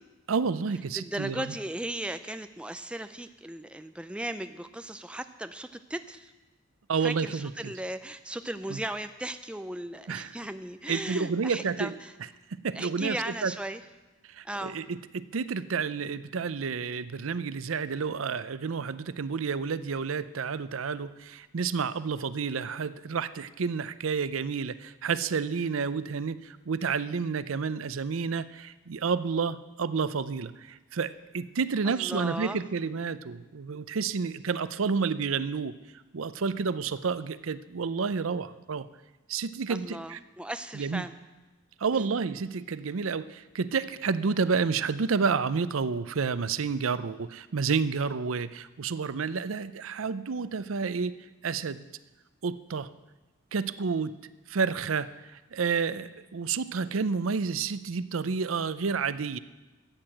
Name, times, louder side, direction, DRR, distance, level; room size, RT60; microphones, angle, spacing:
voice 1, 0.3-1.5 6.9-7.7 8.7-8.8 10.1-10.3 10.9-11.9 12.6-13.5 14.3-35.7 36.1-38.9 39.3-40.2 40.7-41.1 41.8-51.8 52.4-52.9 53.5-54.1 54.5-55.1 55.5-59.4, right 5 dB, 90° right, 15 dB, 0.6 m, -30 dB
voice 2, 0.9-6.3 7.0-12.1 12.7-13.8 14.4-14.8 31.8-32.6 39.7-41.1 41.9-42.1, right 1 dB, 5° right, 9 dB, 0.4 m, -37 dB
13.0 x 9.0 x 7.7 m, 1.1 s
head